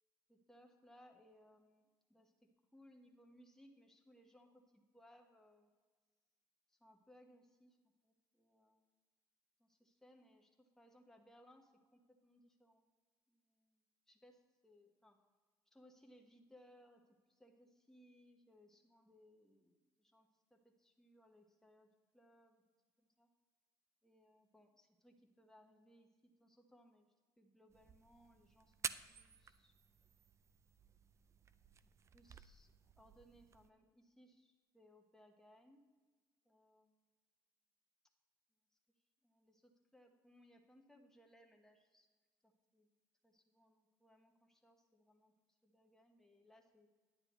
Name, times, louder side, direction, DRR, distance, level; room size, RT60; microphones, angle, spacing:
voice 1, 0.3-2.3 2.7-5.7 6.7-7.8 8.0-8.9 9.6-12.8 13.3-15.2 15.7-22.6 23.0-23.3 24.0-27.1 27.4-29.8 31.8-35.8 36.4-37.0 39.2-42.1 42.4-42.9 43.2-45.3 45.6-46.9, equal, 5° left, 2 dB, 1.1 m, -67 dB
sound 1, 27.7-33.7, right 6 dB, 30° right, 0.4 m, -51 dB
9.8 x 9.6 x 3.0 m, 1.4 s
cardioid pair, 100°, 9 cm